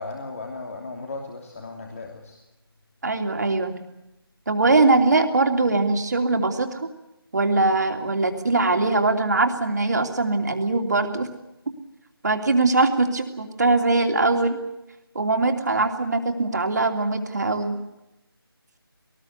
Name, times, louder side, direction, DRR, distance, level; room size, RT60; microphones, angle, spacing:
voice 1, 0.0-2.4, left 3 dB, 35° left, 1 dB, 2.9 m, -36 dB
voice 2, 3.0-3.7 4.5-6.9 7.3-11.3 11.7-11.8 12.2-14.6 15.1-17.7, right 3 dB, 45° right, 5 dB, 2.9 m, -21 dB
22.0 x 19.5 x 8.2 m, 0.90 s
figure-of-eight pair, 165°, 13 cm